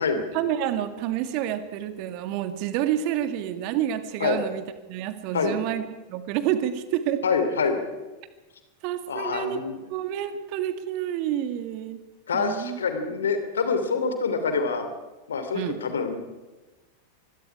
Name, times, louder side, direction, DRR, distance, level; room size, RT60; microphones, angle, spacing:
voice 1, 0.3-4.6 4.9-7.2 8.8-9.6 9.9-12.0 12.3-12.8 15.5-15.8, right 11 dB, 45° right, 10 dB, 1.9 m, -28 dB
voice 2, 7.2-7.8 9.1-9.8 12.3-14.8 15.3-16.2, left 5 dB, 65° left, 8 dB, 3.1 m, -26 dB
25.5 x 21.0 x 4.9 m, 1.2 s
figure-of-eight pair, 90°, 0 cm